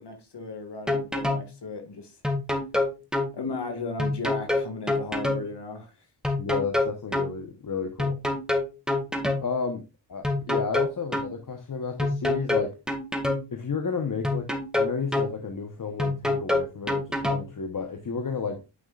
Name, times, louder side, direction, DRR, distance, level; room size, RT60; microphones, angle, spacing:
voice 1, 0.0-2.1 3.3-5.9, left 3 dB, 65° left, 2.0 m, -36 dB
sound 1, 0.9-1.5 2.2-3.3 4.0-5.4 6.2-7.3 8.0-9.5 10.2-11.3 12.0-13.5 14.2-15.3 16.0-17.5, left 2 dB, ahead, 2.0 m, -26 dB
voice 2, 6.4-8.2 9.4-9.8 10.1-12.7 13.5-18.6, left 5 dB, 45° left, 1.1 m, -32 dB
9.8 x 5.4 x 2.4 m
cardioid pair, 60°, 44 cm